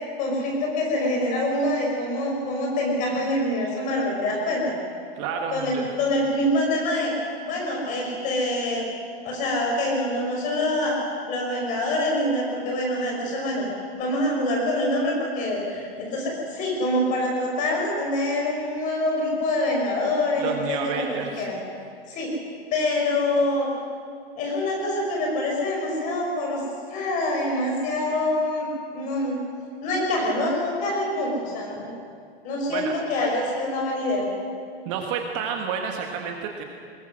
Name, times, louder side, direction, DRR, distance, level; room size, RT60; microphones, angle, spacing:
voice 1, 0.2-4.7 5.5-7.1 7.4-8.9 9.2-11.0 11.3-13.6 14.0-21.0 21.4-21.5 22.1-22.3 22.7-23.7 24.4-26.6 26.9-28.7 28.9-29.4 29.8-31.9 32.4-34.2, left 1 dB, 25° left, -1 dB, 5.4 m, -25 dB
voice 2, 5.2-5.9 20.4-21.5 32.7-32.9 34.9-36.6, right 6 dB, 30° right, 2 dB, 1.6 m, -30 dB
22.0 x 21.5 x 6.3 m, 2.2 s
hypercardioid pair, 165°, 31 cm